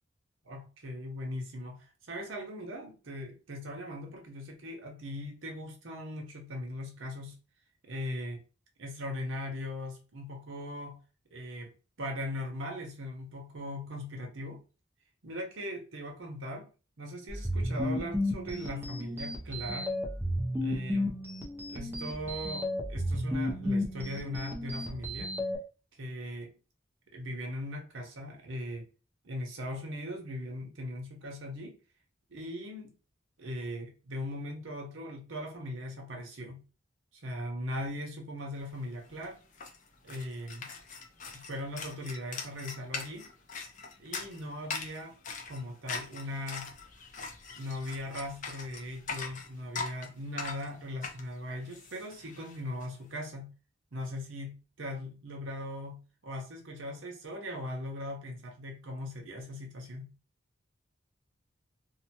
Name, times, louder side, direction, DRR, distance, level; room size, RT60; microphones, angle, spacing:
voice 1, 0.4-7.4 7.8-8.4 8.8-11.0 11.3-11.7 12.0-14.6 15.2-16.7 17.0-19.9 20.6-21.2 21.7-25.3 25.9-26.5 27.1-28.8 29.2-31.8 32.3-32.9 33.4-36.6 37.1-39.4 40.0-40.7 41.3-43.3 44.0-45.2 45.5-46.7 47.6-53.5 53.9-60.1, left 1 dB, 75° right, 0.8 m, -39 dB
sound 1, 17.3-25.6, left 1 dB, 10° right, 0.5 m, -33 dB
sound 2, 38.7-38.8 39.0-52.9, left 5 dB, 40° left, 0.5 m, -42 dB
2.8 x 2.2 x 2.8 m
head